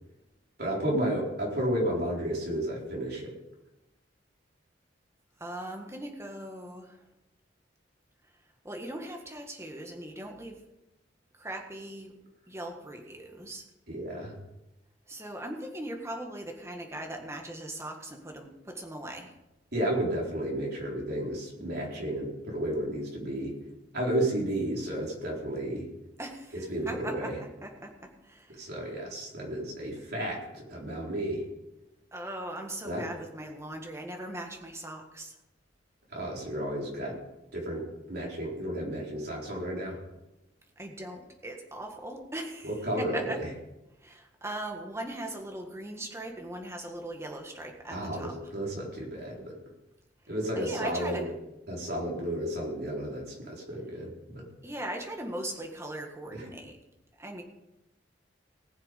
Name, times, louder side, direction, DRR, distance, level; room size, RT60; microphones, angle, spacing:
voice 1, 0.6-3.4 13.9-14.3 19.7-23.5 23.9-25.9 26.5-27.4 28.6-31.4 32.8-33.0 36.1-37.2 37.5-40.0 42.6-43.5 47.9-49.6 50.3-51.3 51.7-54.4 56.3-56.4, right 1 dB, 60° right, -3 dB, 4.3 m, -32 dB
voice 2, 5.4-7.0 8.6-10.6 11.4-12.2 12.5-13.7 15.1-19.3 26.2-28.7 32.1-35.3 40.8-43.4 44.0-48.3 50.6-51.3 54.6-56.8 57.2-57.4, right 1 dB, 15° right, 2 dB, 1.7 m, -39 dB
19.5 x 7.4 x 5.4 m, 0.94 s
head